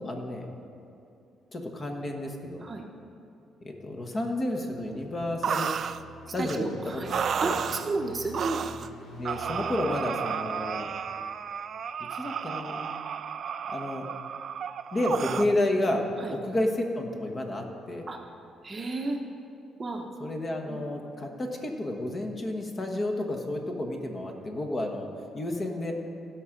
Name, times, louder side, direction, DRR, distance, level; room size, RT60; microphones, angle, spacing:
voice 1, 0.1-0.5 1.5-2.6 3.6-5.7 6.3-7.6 9.1-10.9 12.2-12.9 13.7-14.0 14.9-18.1 20.2-25.1 25.3-25.9, left 1 dB, 30° left, 3 dB, 1.3 m, -31 dB
sound 1, 4.3-11.5, equal, 80° left, 2.9 m, -48 dB
sound 2, 5.4-6.0 6.5-6.6 7.1-7.9 8.3-8.9 9.3-15.5, right 7 dB, 50° right, 0.3 m, -32 dB
voice 2, 6.4-7.1 7.4-8.7 16.2-16.3 18.1-18.2 18.6-19.2 19.8-20.1 20.7-20.8, right 3 dB, 25° right, 3 dB, 0.9 m, -32 dB
16.5 x 6.1 x 5.1 m, 2.7 s
cardioid pair, 125°, 0 cm